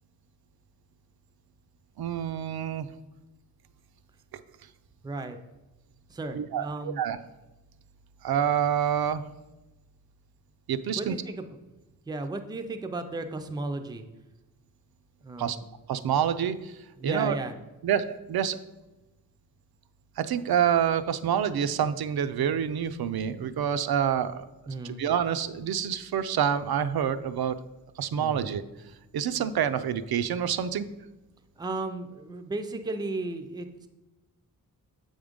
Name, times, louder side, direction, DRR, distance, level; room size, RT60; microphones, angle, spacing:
voice 1, 2.0-2.9 6.3-7.2 8.2-9.2 10.7-11.2 15.4-15.6 15.9-16.8 17.0-17.4 17.8-18.6 20.2-24.5 24.8-27.6 28.0-28.6 29.1-30.9, right 8 dB, 85° right, 11 dB, 0.5 m, -27 dB
voice 2, 5.0-5.4 6.1-7.0 11.0-11.4 12.1-14.0 15.2-15.6 17.0-17.5 24.7-25.0 28.2-28.5 31.6-33.9, right 2 dB, 10° right, 7 dB, 0.4 m, -34 dB
7.7 x 3.6 x 5.1 m, 1.1 s
wide cardioid pair, 170°, 36 cm